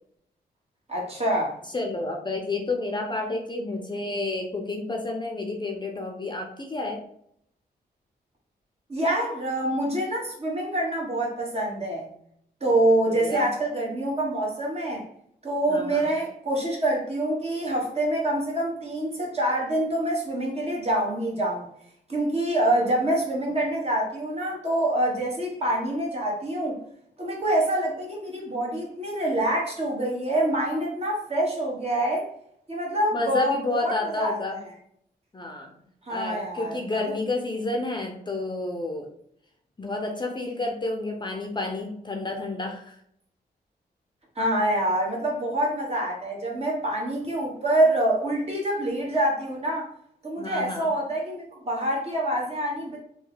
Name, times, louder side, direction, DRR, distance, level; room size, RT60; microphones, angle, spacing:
voice 1, 0.9-1.6 8.9-12.1 12.6-15.0 15.4-21.7 22.1-26.8 27.2-32.3 32.7-33.5 33.8-34.4 36.0-37.0 44.4-49.9 50.2-53.0, right 1 dB, 35° right, -2 dB, 1.3 m, -26 dB
voice 2, 1.7-7.0 12.7-13.5 15.7-16.1 33.1-34.6 35.3-35.7 36.1-39.1 39.8-43.0 50.4-50.9, left 2 dB, 25° left, 2 dB, 0.6 m, -30 dB
3.2 x 2.2 x 3.8 m, 0.68 s
cardioid pair, 85°, 17 cm